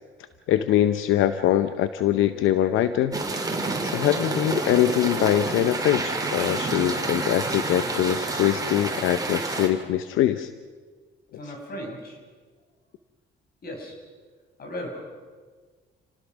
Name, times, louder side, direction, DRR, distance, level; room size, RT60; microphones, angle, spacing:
voice 1, 0.5-3.2 3.8-10.5, left 11 dB, 85° left, 11 dB, 0.8 m, -23 dB
sound 1, 3.1-9.7, right 3 dB, 20° right, 3.7 m, -29 dB
voice 2, 11.3-12.2 13.6-14.0 14.6-15.0, equal, 50° left, 2 dB, 6.4 m, -36 dB
28.5 x 19.0 x 6.2 m, 1.5 s
cardioid pair, 90°, 20 cm